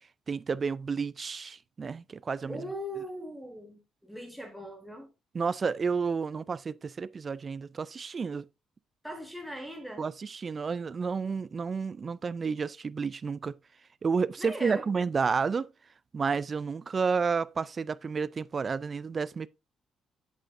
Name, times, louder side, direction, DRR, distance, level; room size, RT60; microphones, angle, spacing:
voice 1, 0.3-2.6 5.3-8.5 10.0-13.5 14.0-15.7 16.1-19.5, right 5 dB, 35° right, 0.3 m, -31 dB
voice 2, 2.5-5.1 9.0-10.0 14.4-14.9, equal, ahead, 1.6 m, -39 dB
8.4 x 7.7 x 2.5 m
cardioid pair, 110°, 0 cm